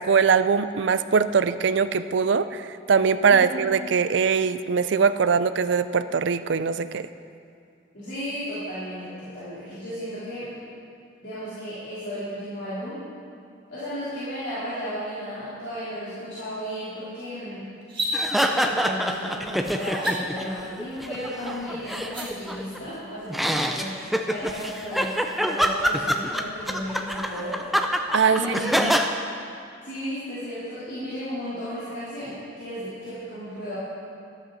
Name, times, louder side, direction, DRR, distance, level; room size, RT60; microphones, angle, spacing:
voice 1, 0.0-7.1 28.1-28.9, right 6 dB, 65° right, 13 dB, 0.4 m, -22 dB
voice 2, 3.2-3.6 7.9-10.5 11.2-13.0 13.7-17.7 18.4-27.6 28.3-28.8 29.8-33.8, equal, 60° left, -13 dB, 3.6 m, -34 dB
sound 1, 17.8-18.2 19.9-20.1 22.0-22.3, equal, 25° right, 2.0 m, -29 dB
sound 2, 18.1-20.5 20.8-22.8 23.3-29.1, equal, ahead, 0.5 m, -26 dB
13.5 x 12.5 x 4.1 m, 2.4 s
head